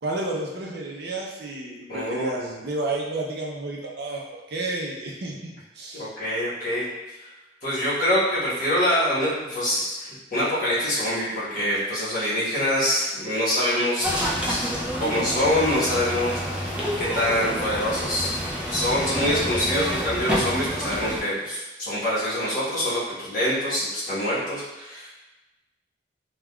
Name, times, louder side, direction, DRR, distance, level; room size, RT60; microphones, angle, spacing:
voice 1, 0.0-6.1, right 2 dB, 60° right, -1 dB, 0.5 m, -31 dB
voice 2, 1.9-2.5 5.9-6.9 7.6-14.1 14.4-14.6 15.0-18.3 18.7-25.1, left 1 dB, 45° left, -9 dB, 1.1 m, -25 dB
sound 1, 14.0-21.2, equal, 5° right, 0.3 m, -28 dB
3.5 x 2.3 x 2.2 m, 1.1 s
head